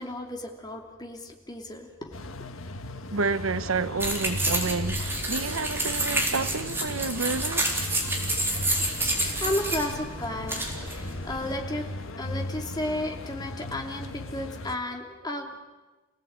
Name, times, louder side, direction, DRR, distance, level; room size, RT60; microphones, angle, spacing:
voice 1, 0.0-2.2 9.2-15.6, left 1 dB, 20° left, 3.0 m, -33 dB
sound 1, 2.1-14.7, left 1 dB, 80° left, 1.4 m, -37 dB
voice 2, 3.1-7.8, right 4 dB, 85° right, 1.0 m, -29 dB
sound 2, 4.0-11.5, right 1 dB, 10° right, 4.0 m, -29 dB
29.5 x 17.5 x 8.9 m
head